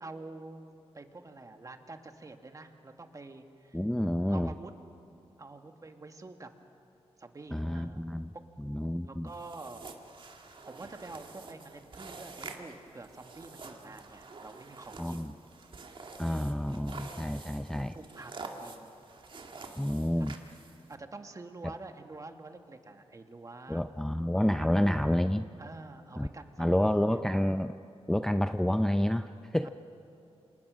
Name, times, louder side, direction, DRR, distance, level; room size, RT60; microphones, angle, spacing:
voice 1, 0.0-3.8 4.3-4.8 5.4-6.5 7.2-8.0 8.3-8.5 9.0-9.9 10.7-15.4 16.2-16.6 17.7-18.3 18.6-19.0 19.8-20.3 20.9-23.8 24.6-24.8 25.6-27.2 29.6-29.7, right 3 dB, 30° right, 6 dB, 1.7 m, -47 dB
voice 2, 3.7-4.5 7.5-8.3 8.6-9.3 15.0-15.3 16.2-17.9 19.8-20.3 23.7-25.5 26.2-26.3 26.6-27.7 28.1-29.7, left 1 dB, 5° left, 9 dB, 0.5 m, -29 dB
sound 1, 9.3-20.9, right 3 dB, 50° right, 2.1 m, -47 dB
28.5 x 26.5 x 6.3 m, 2.8 s
wide cardioid pair, 105°, 11 cm